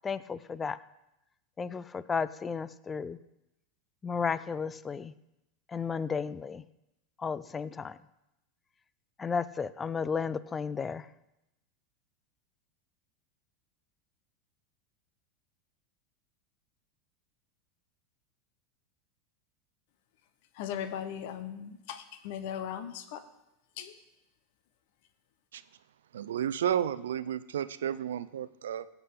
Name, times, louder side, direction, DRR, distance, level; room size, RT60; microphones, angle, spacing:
voice 1, 0.0-0.8 1.6-3.2 4.0-5.1 5.7-6.6 7.2-8.0 9.2-11.1, left 5 dB, 20° left, 16 dB, 0.5 m, -33 dB
voice 2, 20.6-23.2 23.8-23.9, left 9 dB, 65° left, 10 dB, 1.0 m, -38 dB
voice 3, 26.1-28.9, right 9 dB, 90° right, 15 dB, 0.5 m, -32 dB
17.0 x 8.1 x 3.8 m, 0.91 s
hypercardioid pair, 110°, 0 cm